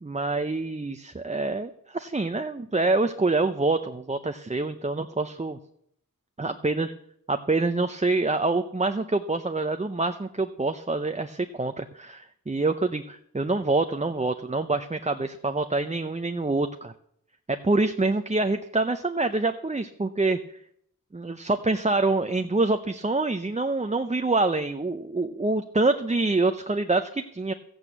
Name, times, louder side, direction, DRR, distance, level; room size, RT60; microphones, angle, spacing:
voice 1, 0.0-5.6 6.4-6.9 7.3-16.9 17.5-20.4 21.1-27.5, right 3 dB, 20° right, 8 dB, 0.6 m, -26 dB
14.0 x 8.5 x 7.9 m, 0.71 s
wide cardioid pair, 75°, 34 cm